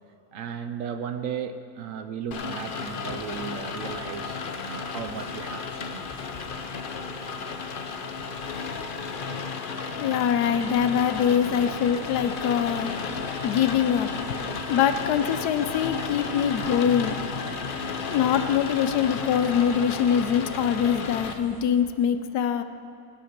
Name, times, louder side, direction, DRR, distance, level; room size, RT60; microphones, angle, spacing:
voice 1, 0.3-6.2, right 7 dB, 65° right, 9 dB, 0.9 m, -35 dB
Rain, 2.3-21.3, left 5 dB, 45° left, 0.7 m, -33 dB
voice 2, 10.0-12.9 13.4-14.1 14.7-17.2 18.1-22.6, left 8 dB, 80° left, 10 dB, 1.2 m, -23 dB
sound 1, 10.5-21.6, left 1 dB, 20° right, 2.6 m, -49 dB
16.0 x 10.5 x 5.9 m, 2.6 s
omnidirectional pair, 1.7 m